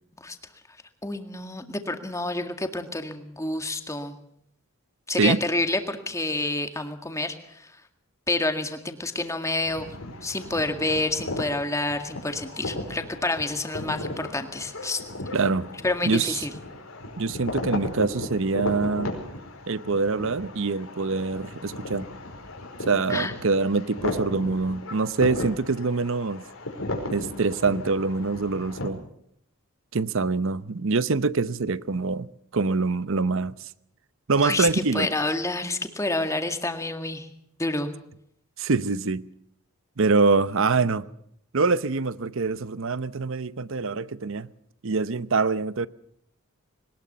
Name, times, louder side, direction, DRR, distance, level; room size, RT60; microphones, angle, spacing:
voice 1, 1.0-4.2 5.1-7.4 8.3-9.9 10.2-15.0 15.8-16.5 23.1-23.3 34.4-37.3 37.6-37.9, left 2 dB, 15° left, 2.0 m, -28 dB
sound 1, 9.7-28.9, left 2 dB, 85° left, 4.8 m, -36 dB
voice 2, 15.3-15.7 16.0-16.5 17.2-19.1 19.7-22.1 22.9-26.5 27.1-29.0 29.9-32.3 32.5-33.6 34.3-35.1 38.6-39.3 40.0-41.0 41.5-44.5 44.8-45.9, right 4 dB, 65° right, 0.8 m, -24 dB
21.5 x 19.5 x 6.9 m
head